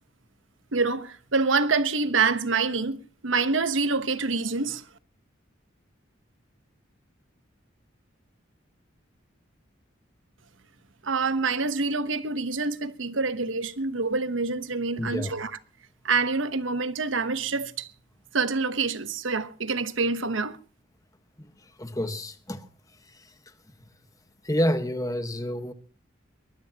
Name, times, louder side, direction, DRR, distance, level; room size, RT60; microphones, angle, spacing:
voice 1, 0.7-3.0 3.2-4.8 11.0-15.5 16.0-17.9 18.3-20.6, right 4 dB, 80° right, 1.1 m, -26 dB
voice 2, 15.0-15.3 21.4-22.7 23.1-23.2 24.4-25.7, equal, 20° left, 1.3 m, -29 dB
22.5 x 20.0 x 2.9 m
head